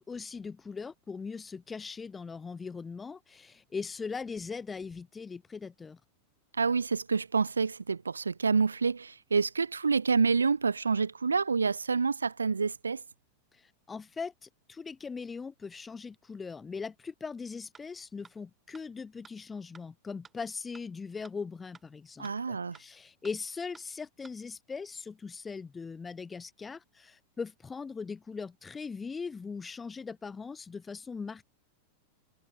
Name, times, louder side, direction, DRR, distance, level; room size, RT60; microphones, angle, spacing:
voice 1, 0.0-6.0 13.5-31.4, left 5 dB, 15° left, 3.1 m, -40 dB
voice 2, 6.6-13.0 22.2-22.8, right 5 dB, 75° right, 0.4 m, -28 dB
sound 1, 17.7-17.8 18.2-18.3 18.7-18.8 19.2-19.3 19.7-19.8 20.2-20.3 20.7-20.8 21.2-21.3 21.7-21.8 22.2-22.3 22.7-22.8 23.2-23.3 23.7-23.8 24.2-24.3, right 5 dB, 15° right, 7.6 m, -53 dB
figure-of-eight pair, 90°, 0 cm